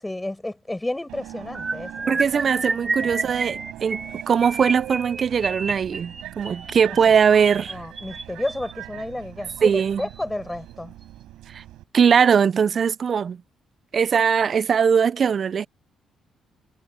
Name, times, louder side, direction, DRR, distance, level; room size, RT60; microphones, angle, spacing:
voice 1, 0.0-3.3 6.9-7.0 7.3-7.4 7.7-10.9, left 1 dB, 10° left, 6.2 m, -32 dB
Subway metro underground, 1.1-11.8, right 14 dB, 90° right, 6.9 m, -40 dB
sound 1, 1.5-8.7 9.5-9.7 10.0-10.2 10.5-10.7, right 3 dB, 25° right, 2.4 m, -30 dB
voice 2, 2.1-7.8 9.6-10.0 11.5-11.6 11.9-13.4 13.9-15.7, right 7 dB, 50° right, 0.4 m, -20 dB
cardioid pair, 90°, 0 cm